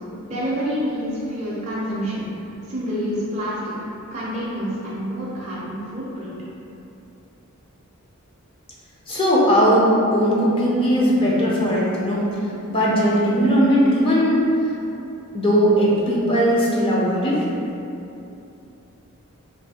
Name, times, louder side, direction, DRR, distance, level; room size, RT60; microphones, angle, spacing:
voice 1, 0.2-2.3 2.7-6.3, equal, 30° right, -8 dB, 0.5 m, -28 dB
voice 2, 9.1-12.3 12.7-14.4 15.3-17.4, equal, 25° left, -6 dB, 0.5 m, -18 dB
2.6 x 2.6 x 4.1 m, 2.8 s
head